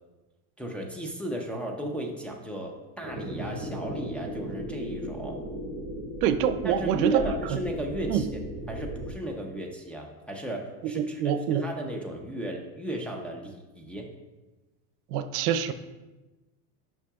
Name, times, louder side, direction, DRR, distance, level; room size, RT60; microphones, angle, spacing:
voice 1, 0.6-5.4 6.6-14.1, right 1 dB, 5° left, -2 dB, 0.6 m, -35 dB
sound 1, 3.0-9.1, right 1 dB, 35° right, 1.9 m, -36 dB
voice 2, 6.2-7.2 8.1-8.3 10.9-11.6 15.1-15.7, right 9 dB, 85° right, 11 dB, 0.6 m, -25 dB
9.8 x 5.8 x 2.4 m, 1.1 s
supercardioid pair, 135°, 44 cm